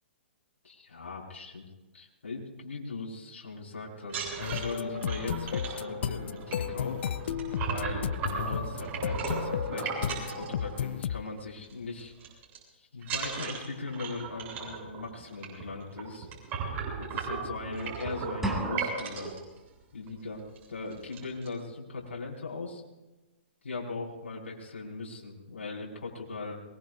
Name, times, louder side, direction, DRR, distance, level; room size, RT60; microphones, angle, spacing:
voice 1, 0.6-1.6 1.9-7.0 7.7-12.1 12.7-16.3 17.0-19.3 19.9-22.8 23.6-26.6, left 3 dB, 80° left, -3 dB, 5.9 m, -39 dB
sound 1, 4.0-11.2 11.5-11.7 12.0-12.6 13.0-19.4 20.1-20.2 20.5-20.7 20.9-21.5, right 5 dB, 30° right, 7.8 m, -36 dB
sound 2, 4.4-11.2, left 9 dB, 65° left, 0.5 m, -34 dB
sound 3, 18.4-19.4, right 1 dB, 5° right, 2.6 m, -33 dB
23.5 x 22.5 x 2.7 m, 1.1 s
hypercardioid pair, 130°, 6 cm